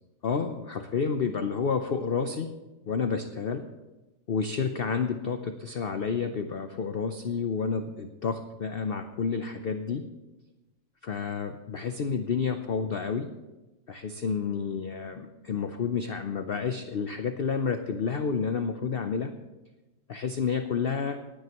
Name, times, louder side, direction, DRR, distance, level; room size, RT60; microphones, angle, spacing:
voice 1, 0.2-2.5 2.9-3.6 4.3-10.0 11.0-13.3 13.9-19.3 20.1-21.1, left 5 dB, 75° left, 7 dB, 0.5 m, -30 dB
20.0 x 9.4 x 3.0 m, 1.1 s
omnidirectional pair, 1.9 m